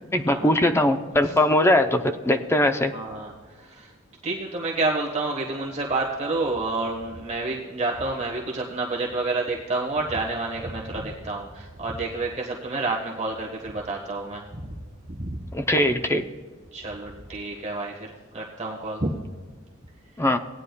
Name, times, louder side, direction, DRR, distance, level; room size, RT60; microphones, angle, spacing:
voice 1, 0.1-2.9 15.5-16.2 20.2-20.4, left 1 dB, 15° left, 7 dB, 0.6 m, -21 dB
voice 2, 2.9-3.9 4.2-14.8 15.1-15.3 16.7-19.1, right 2 dB, 35° right, -2 dB, 1.4 m, -29 dB
18.0 x 9.9 x 2.3 m, 1.5 s
head